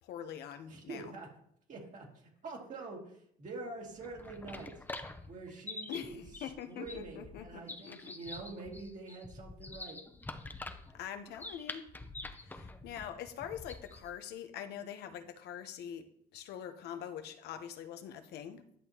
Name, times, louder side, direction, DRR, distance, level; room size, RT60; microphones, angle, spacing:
voice 1, 0.0-1.1 5.9-8.1 10.9-11.8 12.4-18.6, left 9 dB, 75° left, 9 dB, 0.8 m, -44 dB
voice 2, 0.7-1.3 1.7-4.8 5.3-6.2 6.6-10.0, right 3 dB, 50° right, 0 dB, 2.2 m, -46 dB
sound 1, 3.9-14.1, left 2 dB, 10° left, 0.7 m, -46 dB
10.5 x 6.4 x 2.9 m, 0.68 s
cardioid pair, 110°, 17 cm